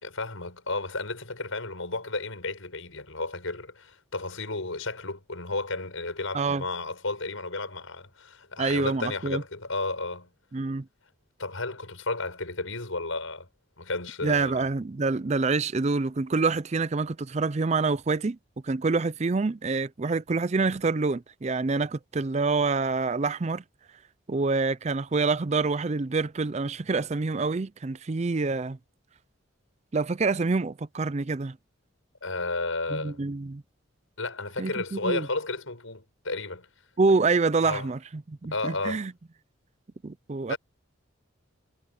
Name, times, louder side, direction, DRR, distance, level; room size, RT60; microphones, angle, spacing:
voice 1, 0.0-10.3 11.4-13.5 13.8-14.6 32.2-33.2 34.2-36.7 37.6-37.9 38.5-39.1 40.5-40.6, left 3 dB, 85° left, 5.8 m, -33 dB
voice 2, 8.6-9.4 10.5-10.9 14.2-18.4 18.6-23.6 24.3-28.8 29.9-31.6 32.9-33.6 34.6-35.3 37.0-39.1 40.0-40.5, right 3 dB, 35° right, 0.4 m, -26 dB
head